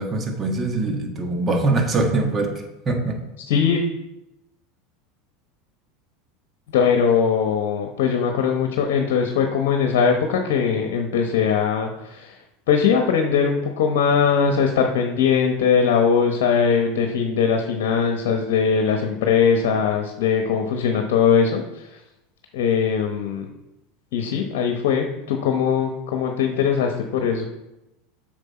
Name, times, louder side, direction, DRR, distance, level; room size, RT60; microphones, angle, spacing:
voice 1, 0.0-2.5 2.9-3.2, right 2 dB, 30° right, 3 dB, 1.7 m, -22 dB
voice 2, 3.5-3.8 6.7-12.4 12.7-22.0 22.5-23.5 24.1-27.5, left 6 dB, 70° left, 4 dB, 1.0 m, -20 dB
8.2 x 6.3 x 4.3 m, 0.93 s
hypercardioid pair, 95°, 0 cm